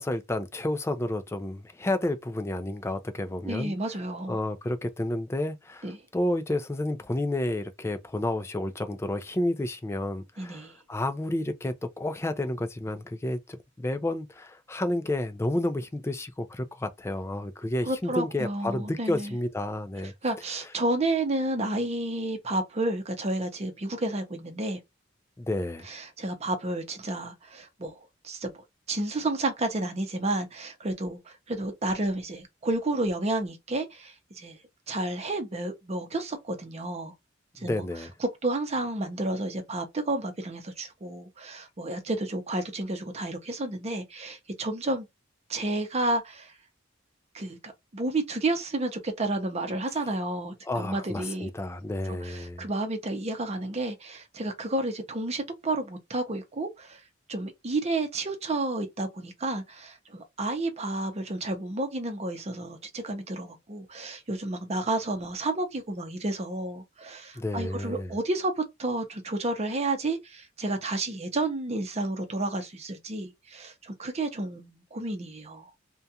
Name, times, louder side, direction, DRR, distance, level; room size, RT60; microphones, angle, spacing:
voice 1, 0.0-3.7 4.3-20.1 25.4-25.9 37.6-38.1 50.7-52.7 67.4-68.1, left 1 dB, 15° left, 0.4 m, -30 dB
voice 2, 3.4-4.4 5.8-6.0 10.4-10.7 17.9-19.4 20.2-24.8 25.8-28.5 28.9-34.6 34.9-37.1 37.6-37.8 38.2-45.1 45.5-46.5 47.3-51.5 52.1-57.0 57.3-75.7, right 2 dB, 35° right, 0.6 m, -31 dB
2.4 x 2.2 x 2.7 m
head